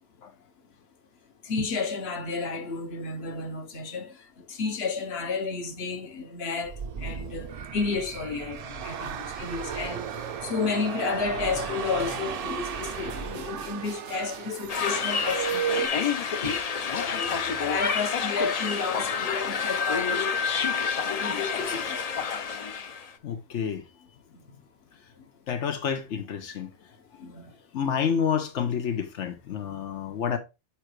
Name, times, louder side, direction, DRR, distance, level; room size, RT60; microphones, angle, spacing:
voice 1, 1.4-4.1 4.5-10.1 10.4-15.9 16.4-16.6 16.9-20.4 21.0-22.0 27.2-27.5, left 4 dB, 65° left, 1.3 m, -32 dB
sound 1, 6.6-13.9, right 7 dB, 50° right, 0.4 m, -36 dB
sound 2, 8.8-15.9, right 8 dB, 85° right, 0.9 m, -36 dB
sound 3, 14.7-23.1, left 6 dB, 45° left, 0.5 m, -28 dB
voice 2, 23.2-23.8 25.5-26.7 27.7-30.4, left 7 dB, 90° left, 1.2 m, -29 dB
7.3 x 5.0 x 3.1 m
omnidirectional pair, 1.2 m